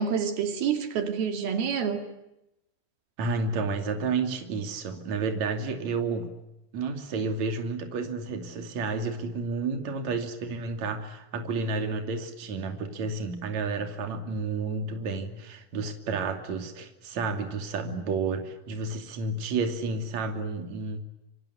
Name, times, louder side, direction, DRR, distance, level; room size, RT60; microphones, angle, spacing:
voice 1, 0.0-2.0, right 7 dB, 85° right, 6 dB, 4.4 m, -28 dB
voice 2, 3.2-6.3 6.7-21.0, right 4 dB, 50° right, 5 dB, 3.8 m, -31 dB
27.0 x 26.0 x 8.4 m, 0.89 s
omnidirectional pair, 4.2 m